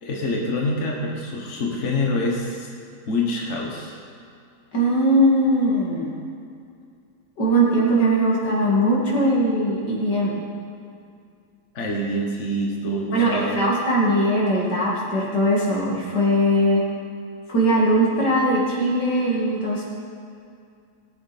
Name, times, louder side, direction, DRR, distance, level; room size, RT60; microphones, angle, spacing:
voice 1, 0.0-2.7 3.0-4.0 11.7-13.8, left 1 dB, 45° left, -2 dB, 1.6 m, -26 dB
voice 2, 4.7-6.1 7.4-10.3 13.1-16.8 17.5-19.8, right 1 dB, 80° left, -5 dB, 2.9 m, -20 dB
18.0 x 8.1 x 4.3 m, 2.4 s
omnidirectional pair, 1.8 m